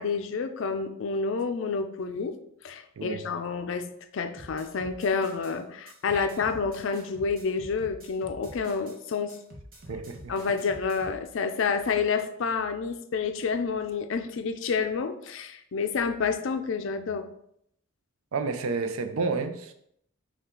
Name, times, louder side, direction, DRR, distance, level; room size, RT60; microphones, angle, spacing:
voice 1, 0.0-2.4 2.6-3.9 4.1-9.4 10.3-17.2, left 5 dB, 65° left, 8 dB, 0.4 m, -29 dB
sound 1, 4.4-5.5 5.9-9.0 9.3-11.2, right 1 dB, 40° right, 0.9 m, -47 dB
voice 2, 9.9-10.3 18.3-19.7, right 4 dB, 85° right, 8 dB, 0.5 m, -30 dB
5.5 x 2.4 x 3.7 m, 0.72 s
head